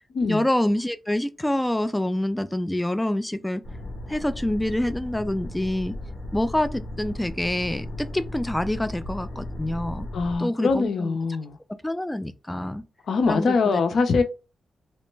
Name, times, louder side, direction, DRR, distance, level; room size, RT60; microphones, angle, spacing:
voice 1, 0.2-3.6 4.1-5.9 6.3-10.1 10.4-11.2 11.8-12.8 13.3-13.8, left 1 dB, 10° left, 0.4 m, -26 dB
sound 1, 3.6-10.4, left 1 dB, 50° left, 1.0 m, -36 dB
voice 2, 10.1-11.6 13.1-14.2, left 4 dB, 70° left, 0.6 m, -23 dB
3.0 x 2.1 x 3.2 m
cardioid pair, 55°, 0 cm